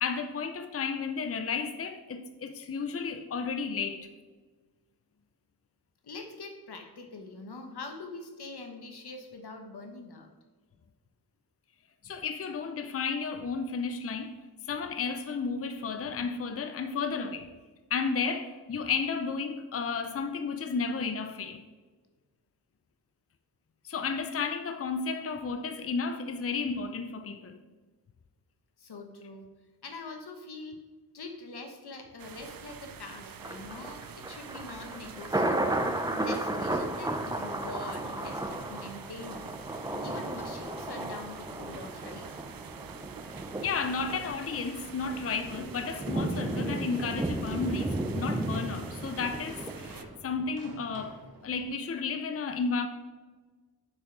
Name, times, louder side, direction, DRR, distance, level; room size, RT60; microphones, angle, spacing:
voice 1, 0.0-4.1 12.0-14.4 14.7-17.5 17.9-21.6 23.8-27.6 43.6-52.9, left 5 dB, 35° left, 0.6 m, -33 dB
voice 2, 6.0-10.3 28.8-29.5 29.8-30.8 31.1-42.2, left 3 dB, 80° left, 1.2 m, -44 dB
sound 1, 32.2-50.0, right 7 dB, 60° right, 0.6 m, -47 dB
Thunder, 33.4-50.5 50.9-51.0, right 1 dB, 10° right, 0.7 m, -34 dB
sound 2, 45.4-51.9, right 2 dB, 80° right, 1.7 m, -53 dB
6.4 x 6.3 x 4.6 m
wide cardioid pair, 80°, 38 cm